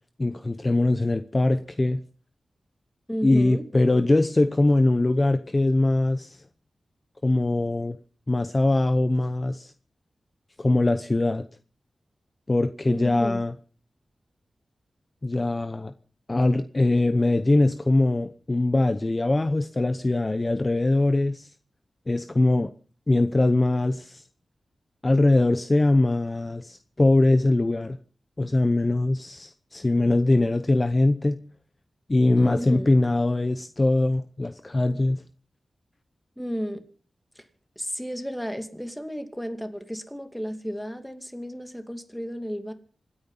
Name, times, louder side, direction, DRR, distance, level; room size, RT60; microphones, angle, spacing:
voice 1, 0.2-2.0 3.2-6.4 7.2-8.0 8.3-9.7 10.6-11.4 12.5-13.5 15.2-15.9 16.3-21.5 22.1-22.7 23.1-24.2 25.0-28.0 28.4-31.4 32.1-35.2, left 2 dB, 30° left, 0.9 m, -22 dB
voice 2, 3.1-3.6 12.9-13.4 32.4-32.9 36.4-36.8 37.8-42.7, equal, 5° left, 2.5 m, -33 dB
26.0 x 9.5 x 5.7 m
wide cardioid pair, 70°, 0 cm